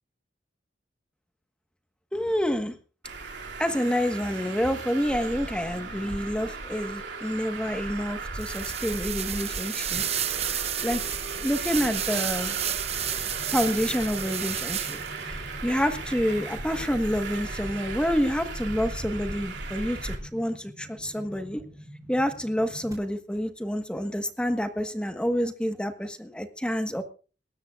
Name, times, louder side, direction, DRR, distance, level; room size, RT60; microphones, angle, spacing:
voice 1, 2.1-2.7 3.6-10.0 10.8-11.0 11.4-12.5 13.5-15.0 15.3-21.6 22.1-27.0, equal, 5° left, 7 dB, 1.3 m, -28 dB
Traffic noise roadway noise, 3.0-20.2, right 3 dB, 70° right, 2.9 m, -37 dB
sound 1, 8.4-15.2, right 10 dB, 35° right, 0.7 m, -31 dB
sound 2, 12.9-22.9, equal, 20° right, 5.3 m, -47 dB
26.0 x 13.0 x 2.4 m, 0.37 s
head